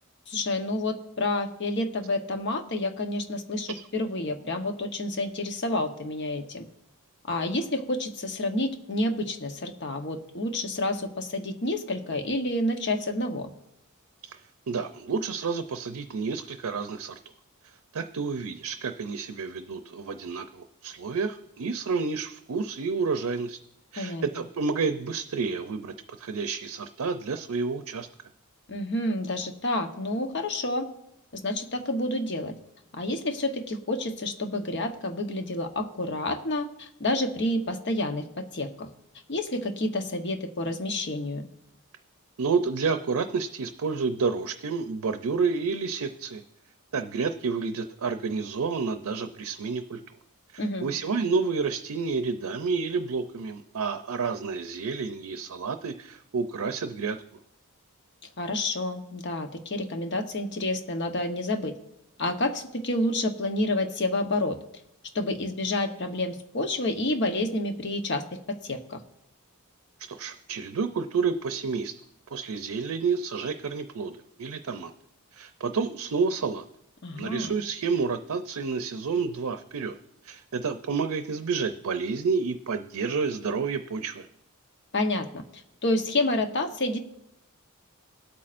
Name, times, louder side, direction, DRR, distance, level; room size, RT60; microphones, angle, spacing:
voice 1, 0.3-6.7 7.3-13.5 24.0-24.2 28.7-30.9 31.3-32.5 32.9-38.9 39.3-41.5 50.6-50.9 58.4-61.7 62.2-64.6 65.1-69.0 77.0-77.5 84.9-87.0, left 1 dB, 50° left, 5 dB, 1.0 m, -29 dB
voice 2, 14.2-17.2 17.6-23.6 23.9-28.1 42.4-46.4 46.9-50.0 50.5-57.2 70.0-71.9 72.3-74.9 75.3-76.6 77.2-79.9 80.2-84.3, right 5 dB, 85° right, 8 dB, 0.5 m, -30 dB
18.5 x 8.5 x 2.5 m, 0.79 s
head